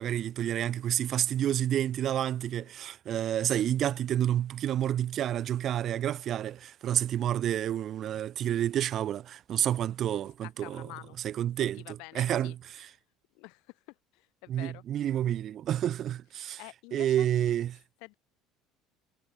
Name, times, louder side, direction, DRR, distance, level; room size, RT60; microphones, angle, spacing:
voice 1, 0.0-10.9 11.2-12.6 14.5-16.6 16.9-17.8, right 11 dB, 50° right, 0.3 m, -29 dB
voice 2, 10.4-11.2 11.7-12.5 13.3-14.8 16.6-17.3 18.0-18.2, left 29 dB, 75° left, 2.5 m, -48 dB
supercardioid pair, 105°, 0 cm